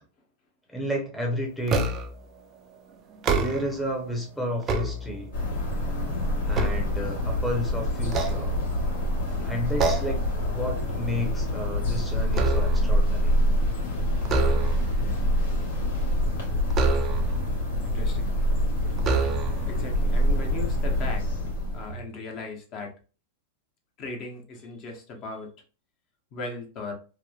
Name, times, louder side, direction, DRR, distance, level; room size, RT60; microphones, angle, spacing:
voice 1, 0.7-2.0 3.3-5.3 6.4-8.5 9.4-13.4, equal, 5° left, -1 dB, 0.7 m, -31 dB
sound 1, 1.7-2.3 3.1-3.9 4.4-5.5 6.0-7.5 8.0-9.0 9.8-10.3 10.7-10.9 11.3-13.0 14.2-15.0 16.7-17.5 18.3-18.4 19.0-19.8, right 3 dB, 30° right, 0.4 m, -28 dB
sound 2, 5.3-22.0, equal, 80° left, 1.1 m, -26 dB
voice 2, 17.8-18.3 19.6-21.4 21.7-22.9 24.0-25.5 26.3-26.9, left 3 dB, 40° left, 2 dB, 0.7 m, -37 dB
2.9 x 2.1 x 2.3 m, 0.35 s
hypercardioid pair, 130°, 0 cm